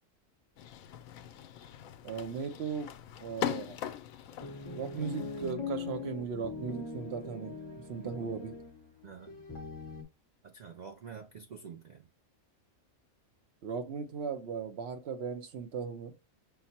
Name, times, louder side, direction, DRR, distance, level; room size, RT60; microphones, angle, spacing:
sound 1, 0.6-5.5, left 11 dB, 85° left, 1.0 m, -41 dB
voice 1, 2.0-2.9 3.2-3.9 4.4-4.5 4.7-7.6 7.9-8.5 13.6-16.1, right 6 dB, 60° right, 0.8 m, -37 dB
sound 2, 4.4-10.0, left 3 dB, 20° left, 0.8 m, -41 dB
voice 2, 8.0-8.3 9.0-9.4 10.4-12.1, right 6 dB, 90° right, 0.3 m, -48 dB
5.8 x 2.0 x 4.2 m
omnidirectional pair, 1.4 m